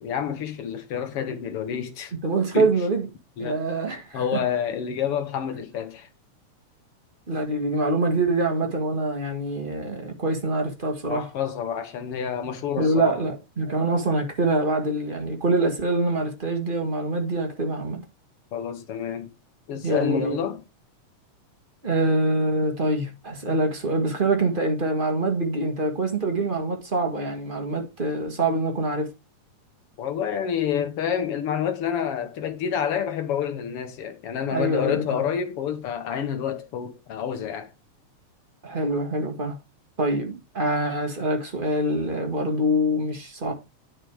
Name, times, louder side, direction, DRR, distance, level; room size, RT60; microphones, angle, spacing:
voice 1, 0.0-2.1 2.5-2.7 3.4-3.6 4.1-6.1 11.1-13.2 18.5-19.3 19.7-20.6 30.0-37.7, left 8 dB, 55° left, 2.0 m, -28 dB
voice 2, 2.2-3.1 3.4-4.2 7.3-11.2 12.8-18.0 19.8-20.4 21.8-29.1 34.5-35.2 38.6-39.6 40.0-43.5, right 2 dB, 25° right, 1.3 m, -25 dB
9.8 x 5.0 x 4.8 m
omnidirectional pair, 3.4 m